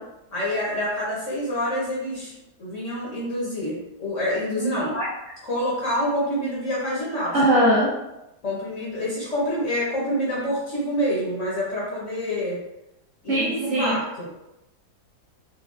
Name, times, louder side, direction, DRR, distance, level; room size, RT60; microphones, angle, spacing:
voice 1, 0.3-5.0 5.4-7.3 8.4-12.6 13.2-14.3, equal, 50° left, -7 dB, 1.1 m, -27 dB
voice 2, 4.6-5.1 7.3-7.9 13.3-14.0, equal, 50° right, -7 dB, 1.3 m, -21 dB
4.5 x 2.3 x 2.4 m, 0.92 s
omnidirectional pair, 1.9 m